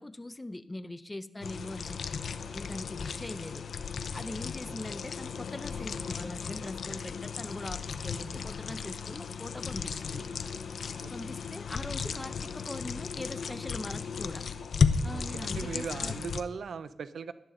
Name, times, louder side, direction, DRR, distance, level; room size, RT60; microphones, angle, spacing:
voice 1, 0.0-2.0 2.5-3.6 4.1-10.2 11.1-14.4 15.0-16.2, left 1 dB, 15° left, 12 dB, 0.6 m, -41 dB
sound 1, 1.4-16.4, left 6 dB, 75° left, 0.7 m, -34 dB
voice 2, 15.1-17.3, right 6 dB, 80° right, 13 dB, 0.6 m, -39 dB
18.0 x 12.0 x 3.9 m, 0.83 s
wide cardioid pair, 145°, 0 cm